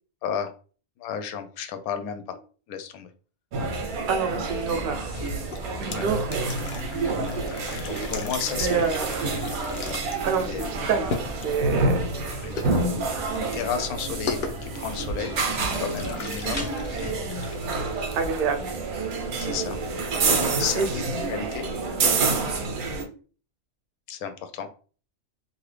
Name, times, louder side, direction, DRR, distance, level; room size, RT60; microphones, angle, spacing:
voice 1, 0.2-0.5 1.0-2.4 2.7-3.1 5.8-6.1 7.8-8.8 10.4-10.7 11.6-11.7 12.2-12.6 13.3-15.3 15.8-16.6 19.4-19.8 20.2-21.0 21.3-21.7 24.1-24.7, left 7 dB, 85° left, 8 dB, 1.1 m, -32 dB
sound 1, 3.5-23.0, right 3 dB, 90° right, 1.2 m, -28 dB
voice 2, 4.1-5.1 5.8-6.5 8.6-9.1 10.2-12.0 17.6-17.9 18.1-18.7 20.7-20.9 21.1-21.3 22.7-22.9, right 6 dB, 55° right, 5 dB, 0.6 m, -27 dB
sound 2, 4.5-18.4, left 2 dB, 20° left, 0.9 m, -41 dB
sound 3, 5.4-19.2, left 4 dB, 60° left, 0.5 m, -39 dB
2.7 x 2.7 x 3.2 m, 0.39 s
omnidirectional pair, 1.5 m